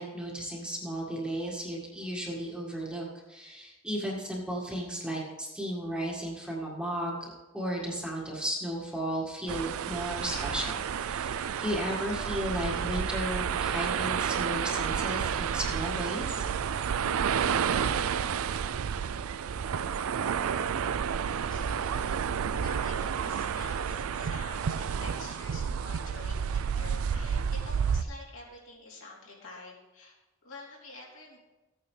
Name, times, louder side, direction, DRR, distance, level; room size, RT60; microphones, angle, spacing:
voice 1, 0.0-16.4, equal, 5° right, -4 dB, 1.8 m, -34 dB
sound 1, 9.5-28.0, right 7 dB, 85° right, 0.4 m, -30 dB
voice 2, 21.3-30.1 30.4-31.4, left 2 dB, 70° left, -4 dB, 3.2 m, -48 dB
15.5 x 9.1 x 3.3 m, 1.1 s
head